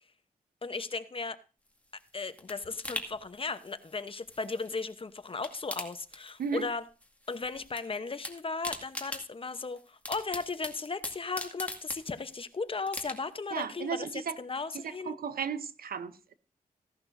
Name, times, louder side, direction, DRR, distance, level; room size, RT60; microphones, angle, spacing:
voice 1, 0.6-1.4 2.1-6.8 7.3-14.1 14.4-15.2, left 4 dB, 35° left, 0.9 m, -36 dB
sound 1, 1.7-4.9 5.2-6.8 7.0-7.8 8.1-12.4 12.9-13.5 13.9-14.0, left 1 dB, 10° left, 2.1 m, -42 dB
voice 2, 13.5-14.4 14.7-16.3, right 6 dB, 85° right, 0.8 m, -35 dB
16.0 x 11.0 x 2.6 m
wide cardioid pair, 90°, 15 cm